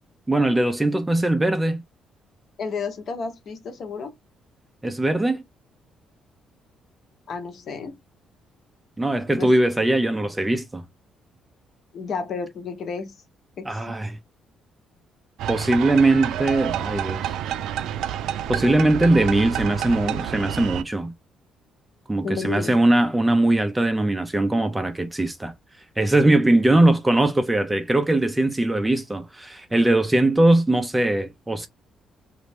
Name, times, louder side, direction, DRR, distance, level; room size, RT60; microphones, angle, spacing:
voice 1, 0.3-1.8 4.8-5.4 9.0-10.8 13.7-14.2 15.5-17.3 18.5-21.1 22.1-25.5 26.0-31.7, right 1 dB, 10° right, 0.4 m, -20 dB
voice 2, 2.6-4.1 7.3-8.0 9.4-9.5 11.9-13.1 13.6-13.8 22.2-22.7, left 5 dB, 45° left, 0.8 m, -31 dB
sound 1, 15.4-20.8, right 10 dB, 85° right, 0.4 m, -29 dB
3.0 x 2.4 x 3.3 m
cardioid pair, 170°, 0 cm